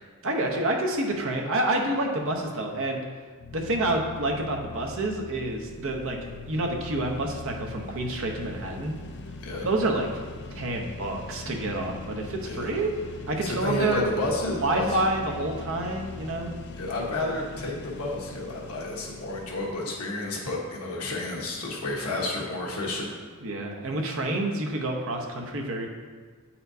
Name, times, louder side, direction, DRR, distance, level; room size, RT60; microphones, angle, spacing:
voice 1, 0.2-3.0 3.5-6.2 6.5-9.0 9.6-10.1 10.5-12.9 13.3-14.0 14.6-16.5 23.4-25.9, right 2 dB, 60° right, 2 dB, 0.8 m, -28 dB
sound 1, 3.4-19.7, left 2 dB, 50° left, 0.5 m, -41 dB
voice 2, 13.4-15.1 16.8-23.1, left 2 dB, 80° left, -3 dB, 1.2 m, -31 dB
8.9 x 4.3 x 2.7 m, 1.5 s
head